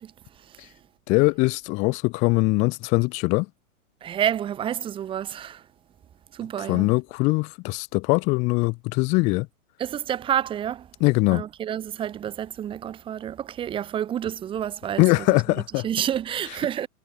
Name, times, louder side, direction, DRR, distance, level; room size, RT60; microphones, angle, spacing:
voice 1, 1.1-3.5 6.6-9.5 11.0-11.4 15.0-15.9, left 26 dB, 15° left, 1.0 m, -22 dB
voice 2, 4.0-5.6 6.4-6.9 9.8-10.8 11.3-15.4 15.8-16.9, right 10 dB, 10° right, 2.1 m, -29 dB
hypercardioid pair, 165°, 45 cm